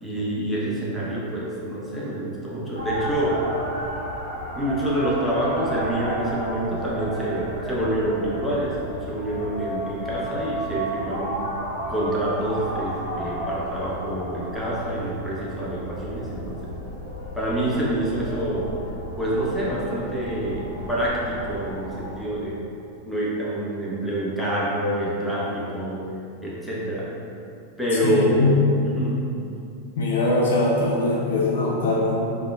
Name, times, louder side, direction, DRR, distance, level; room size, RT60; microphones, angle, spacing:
voice 1, 0.0-3.4 4.5-8.8 9.1-11.4 11.9-16.7 17.4-18.7 19.2-22.6 23.1-26.1 26.4-27.1 27.8-29.2, right 1 dB, 5° left, -7 dB, 0.6 m, -27 dB
sound 1, 2.8-22.2, right 1 dB, 80° left, 1.0 m, -33 dB
voice 2, 28.0-28.6 30.0-32.2, left 2 dB, 60° left, -3 dB, 0.4 m, -21 dB
3.4 x 2.3 x 2.3 m, 2.6 s
figure-of-eight pair, 90°, 0 cm